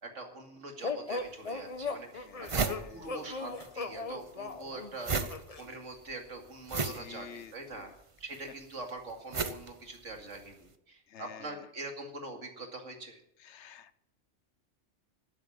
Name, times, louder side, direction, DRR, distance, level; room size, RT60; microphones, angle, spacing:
voice 1, 0.0-5.3 5.6-7.9 8.2-13.2, right 2 dB, 90° right, 4 dB, 2.6 m, -44 dB
sound 1, 0.8-5.7, left 4 dB, 35° left, 0.9 m, -38 dB
sound 2, 1.2-1.3 1.8-1.9 2.1-3.7 4.0-10.5, right 4 dB, 30° right, 0.8 m, -36 dB
voice 2, 2.2-3.2 6.8-7.9 11.1-11.7 13.4-14.1, left 8 dB, 70° left, 15 dB, 1.0 m, -50 dB
12.5 x 9.3 x 8.6 m, 0.75 s
omnidirectional pair, 1.2 m